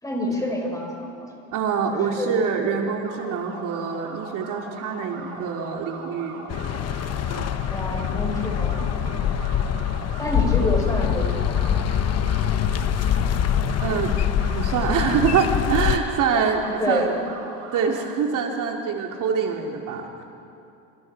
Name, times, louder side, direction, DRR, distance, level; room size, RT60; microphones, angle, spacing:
voice 1, 0.0-1.3 1.9-2.3 7.7-8.9 9.7-9.8 10.2-11.8 16.7-17.1, left 1 dB, 10° left, 0 dB, 5.6 m, -28 dB
voice 2, 1.5-6.5 7.3-7.5 13.8-14.1 14.5-17.1 17.7-20.2, right 6 dB, 50° right, 1 dB, 2.7 m, -25 dB
sound 1, 3.0-18.0, right 4 dB, 85° right, 6.4 m, -40 dB
sound 2, 6.5-16.0, left 9 dB, 40° left, 1.0 m, -24 dB
28.5 x 27.0 x 4.7 m, 2.6 s
supercardioid pair, 120°, 39 cm